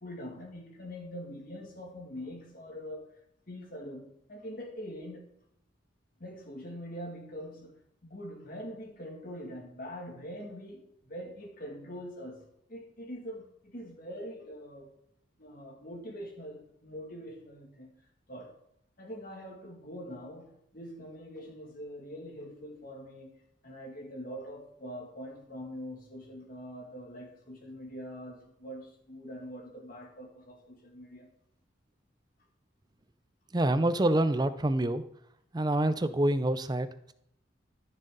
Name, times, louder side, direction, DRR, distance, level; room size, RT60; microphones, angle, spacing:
voice 1, 0.0-3.1 3.5-5.3 6.2-7.7 8.0-12.4 12.7-14.9 15.4-17.9 18.3-18.5 19.0-23.3 23.6-31.3, equal, 45° left, 2.2 m, -43 dB
voice 2, 33.5-35.0 35.5-37.1, right 1 dB, 20° right, 0.5 m, -27 dB
13.5 x 6.6 x 3.9 m
head